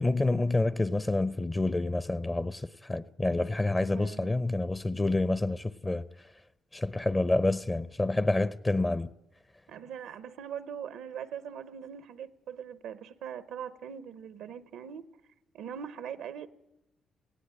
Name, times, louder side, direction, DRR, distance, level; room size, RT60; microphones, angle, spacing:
voice 1, 0.0-6.0 6.7-9.1, left 2 dB, 20° left, 0.6 m, -28 dB
voice 2, 3.9-4.4 9.7-15.0 15.5-16.5, right 8 dB, 90° right, 0.7 m, -41 dB
18.5 x 16.5 x 8.9 m
cardioid pair, 80°, 0 cm